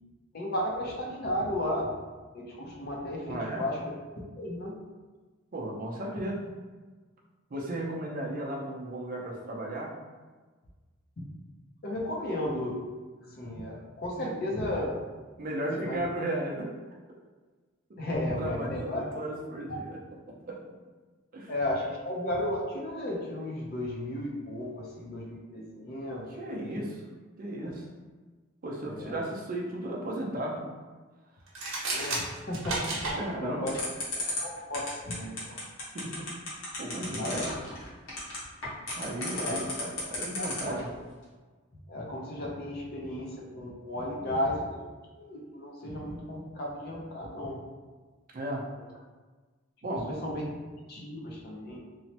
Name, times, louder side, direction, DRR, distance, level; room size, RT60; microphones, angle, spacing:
voice 1, 0.3-2.0 2.3-3.8 4.4-4.7 5.9-6.2 11.2-11.3 11.8-12.8 13.2-14.9 15.8-16.1 18.0-19.0 19.7-19.8 21.5-26.8 28.8-29.3 31.9-33.0 33.3-33.8 34.4-35.6 37.0-37.4 39.3-39.6 40.6-40.8 41.9-44.8 45.1-47.6 49.9-50.5 50.9-51.8, left 1 dB, 50° left, -2 dB, 0.6 m, -34 dB
voice 2, 3.3-3.6 5.5-6.4 7.5-9.9 14.2-14.3 15.4-16.7 18.4-20.0 20.3-20.6 21.3-21.5 26.4-27.0 27.4-27.8 28.6-30.7 31.7-31.9 33.1-33.7 35.9-36.3 36.8-37.5 39.0-40.9 48.3-48.6 49.8-50.1, right 1 dB, 45° right, -1 dB, 0.5 m, -35 dB
sound 1, 31.5-33.2, right 2 dB, 85° right, 0.8 m, -32 dB
sound 2, 33.7-40.8, left 3 dB, 80° left, 1.0 m, -34 dB
3.0 x 2.1 x 2.8 m, 1.4 s
head